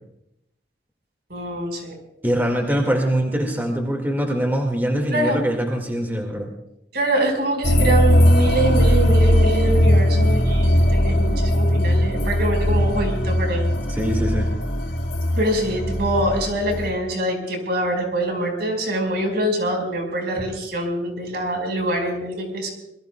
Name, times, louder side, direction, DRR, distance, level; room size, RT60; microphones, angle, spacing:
voice 1, 1.3-1.9 5.1-5.4 6.9-13.7 15.4-22.7, right 1 dB, 60° right, 3 dB, 5.0 m, -24 dB
voice 2, 2.2-6.5 13.9-14.5, equal, 10° right, 2 dB, 2.0 m, -23 dB
sound 1, 7.6-16.9, equal, 65° left, 2.9 m, -19 dB
26.5 x 21.5 x 2.3 m, 0.82 s
head